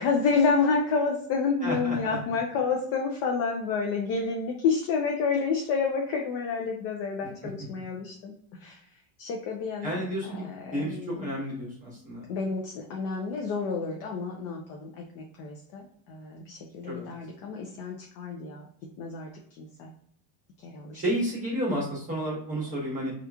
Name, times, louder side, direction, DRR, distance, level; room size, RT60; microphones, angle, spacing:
voice 1, 0.0-8.3 8.6-8.8 9.2-11.3 12.3-18.7 19.0-19.3 19.6-19.9 20.6-21.0 22.7-22.8, left 5 dB, 45° left, 0 dB, 0.5 m, -29 dB
voice 2, 1.6-2.2 9.8-12.3 16.9-17.1 20.9-23.1, right 1 dB, 15° right, -5 dB, 0.9 m, -31 dB
2.8 x 2.5 x 3.4 m, 0.64 s
cardioid pair, 165°, 48 cm